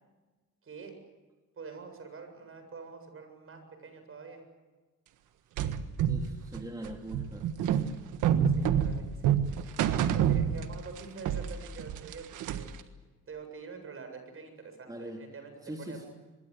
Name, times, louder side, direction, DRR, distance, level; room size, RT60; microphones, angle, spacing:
voice 1, 0.6-1.0 1.6-4.4 8.5-9.4 9.6-12.7 13.3-15.5 15.8-16.1, right 5 dB, 45° right, 7 dB, 7.6 m, -46 dB
sound 1, 5.6-11.0 11.3-12.8, right 9 dB, 90° right, 1.5 m, -28 dB
voice 2, 6.1-7.8 14.9-15.2 15.6-16.1, right 1 dB, 10° right, 1 dB, 3.2 m, -42 dB
24.5 x 22.5 x 8.1 m, 1.3 s
cardioid pair, 90°, 30 cm